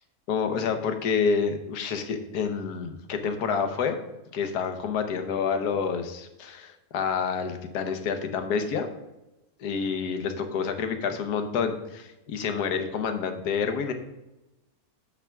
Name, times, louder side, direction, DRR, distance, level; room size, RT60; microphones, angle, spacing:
voice 1, 0.3-4.0 4.3-8.9 9.6-13.9, left 6 dB, 85° left, 7 dB, 1.4 m, -28 dB
8.3 x 3.5 x 5.7 m, 0.98 s
omnidirectional pair, 1.6 m